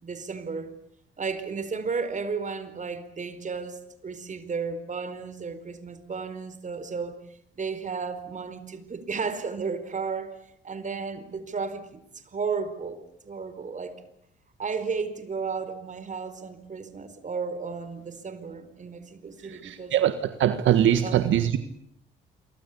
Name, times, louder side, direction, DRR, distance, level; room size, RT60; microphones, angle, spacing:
voice 1, 0.0-0.7 1.2-7.2 7.6-14.0 14.6-19.9 21.0-21.2, right 5 dB, 40° right, 4.5 m, -33 dB
voice 2, 19.4-20.1 20.4-21.6, right 10 dB, 75° right, 1.7 m, -22 dB
29.0 x 24.0 x 8.6 m
cardioid pair, 90°, 20 cm